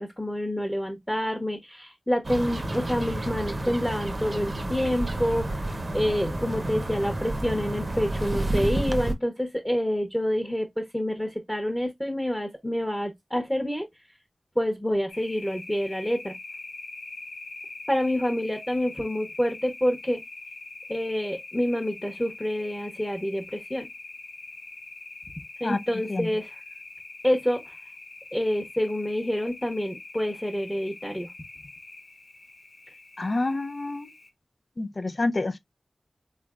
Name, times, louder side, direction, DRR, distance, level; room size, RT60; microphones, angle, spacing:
voice 1, 0.0-13.9 14.6-16.3 17.9-20.2 20.9-23.9 25.6-26.6 27.2-27.7 28.3-31.3, equal, 10° left, 0.9 m, -27 dB
sound 1, 2.2-9.1, right 1 dB, 45° right, 0.7 m, -30 dB
sound 2, 15.1-34.3, left 3 dB, 80° left, 0.8 m, -43 dB
voice 2, 33.2-34.1 34.8-35.6, left 2 dB, 55° left, 0.5 m, -28 dB
3.9 x 3.3 x 2.3 m
wide cardioid pair, 65°, 0 cm